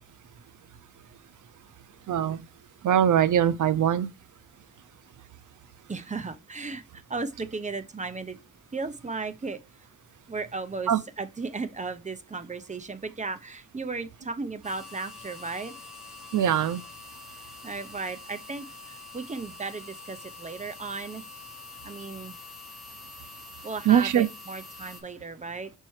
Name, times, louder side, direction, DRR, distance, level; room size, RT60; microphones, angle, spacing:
voice 1, 2.1-2.4 2.8-4.1 10.9-11.0 16.3-16.8 23.9-24.3, right 9 dB, 75° right, 0.5 m, -22 dB
voice 2, 5.9-8.4 8.7-9.6 10.3-10.9 11.2-15.8 17.6-21.2 21.8-22.4 23.6-25.7, right 4 dB, 25° right, 0.6 m, -35 dB
sound 1, 14.6-25.0, left 3 dB, ahead, 2.1 m, -45 dB
6.6 x 4.5 x 3.1 m
wide cardioid pair, 95°, 31 cm